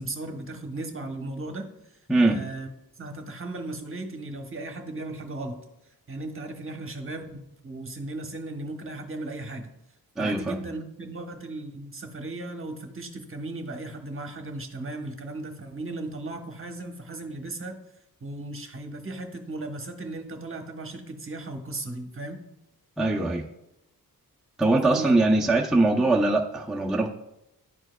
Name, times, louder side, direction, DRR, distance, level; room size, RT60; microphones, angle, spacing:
voice 1, 0.0-2.0 2.3-2.7 3.0-5.6 6.1-9.7 10.2-17.8 18.2-22.4 24.8-25.1, right 2 dB, 35° right, 4 dB, 1.0 m, -36 dB
voice 2, 10.2-10.6 23.0-23.4 24.6-27.1, right 2 dB, ahead, -1 dB, 0.5 m, -22 dB
11.0 x 4.5 x 2.2 m, 0.86 s
wide cardioid pair, 80°, 36 cm